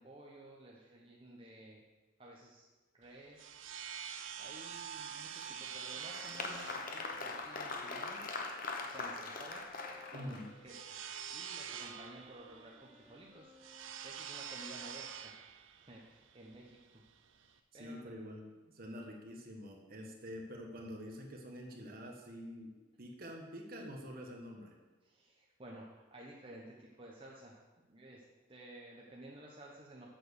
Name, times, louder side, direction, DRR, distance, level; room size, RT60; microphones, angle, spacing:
voice 1, 0.0-1.8 2.2-2.7 2.9-3.6 4.4-8.2 8.8-9.6 10.1-11.0 11.3-15.3 15.8-17.0 17.3-18.0 25.0-27.5 27.9-28.2 28.5-30.1, right 1 dB, 25° right, -3 dB, 1.0 m, -53 dB
sound 1, 3.0-17.6, right 8 dB, 65° right, 0.6 m, -47 dB
Applause, 5.4-10.7, left 3 dB, 45° left, 0.9 m, -42 dB
Wind instrument woodwind instrument, 6.1-14.2, left 1 dB, 80° left, 2.6 m, -60 dB
voice 2, 10.1-10.5 17.7-18.5 18.7-22.7 23.0-24.8, equal, 45° right, 1 dB, 1.5 m, -46 dB
7.8 x 7.1 x 6.4 m, 1.2 s
head